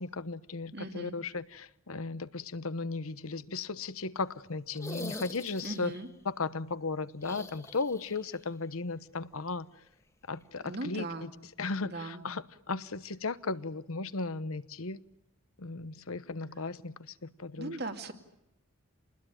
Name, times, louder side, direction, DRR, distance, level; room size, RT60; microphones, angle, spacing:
voice 1, 0.0-5.9 6.2-9.7 10.3-11.3 11.6-15.0 15.6-17.8, left 3 dB, 75° left, 1.0 m, -36 dB
voice 2, 0.7-1.1 5.6-6.1 10.6-11.3 11.8-12.2 17.6-18.1, right 2 dB, 45° right, 2.3 m, -38 dB
sound 1, 4.7-6.1 7.2-8.4 8.6-8.7 10.4-10.5, left 2 dB, 15° left, 1.6 m, -44 dB
28.0 x 20.5 x 9.0 m
head